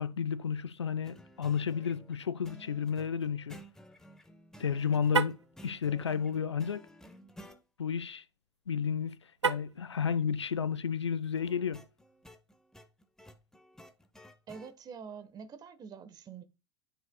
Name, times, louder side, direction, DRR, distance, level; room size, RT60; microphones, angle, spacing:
voice 1, 0.0-3.6 4.6-5.4 5.6-6.8 7.8-8.2 8.7-9.2 9.4-11.8, left 7 dB, 80° left, 0.6 m, -32 dB
sound 1, 1.0-7.6 11.3-14.7, equal, 5° left, 0.9 m, -54 dB
Car, 5.0-5.5 9.4-9.9, right 6 dB, 85° right, 0.4 m, -30 dB
voice 2, 14.5-16.4, right 6 dB, 30° right, 1.0 m, -46 dB
9.9 x 5.5 x 2.2 m
figure-of-eight pair, 85°, 14 cm